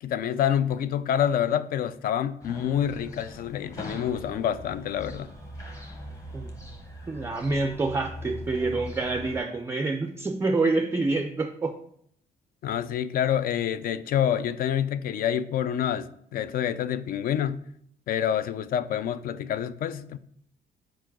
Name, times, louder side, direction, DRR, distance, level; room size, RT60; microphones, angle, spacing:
voice 1, 0.0-5.3 12.6-17.6 18.1-20.2, left 9 dB, 60° left, 0.4 m, -27 dB
sound 1, 2.4-9.4, left 1 dB, 20° left, 0.9 m, -41 dB
voice 2, 7.1-11.8, right 3 dB, 15° right, 0.3 m, -27 dB
4.6 x 4.5 x 6.0 m
cardioid pair, 165°, 17 cm